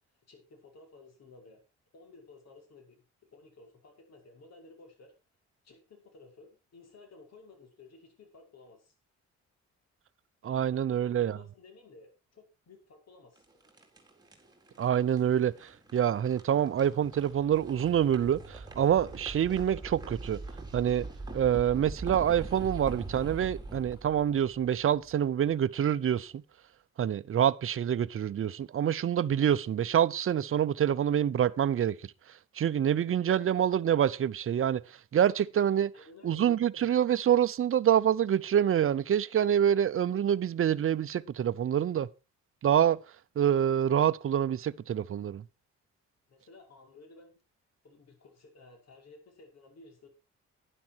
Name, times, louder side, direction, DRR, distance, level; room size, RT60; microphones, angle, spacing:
voice 1, 0.3-1.6 1.9-3.0 3.3-5.1 5.6-8.9 10.7-13.5 35.9-36.5 46.3-47.4 47.8-50.1, left 3 dB, 60° left, 5.7 m, -55 dB
voice 2, 10.4-11.4 14.8-20.4 20.7-21.0 21.3-26.4 27.0-32.0 32.6-34.8 35.1-35.9 36.2-42.1 42.6-43.0 43.4-45.4, right 9 dB, 45° right, 0.8 m, -26 dB
sound 1, 13.4-25.4, right 2 dB, 15° right, 4.4 m, -43 dB
11.5 x 11.0 x 4.6 m
cardioid pair, 90°, 30 cm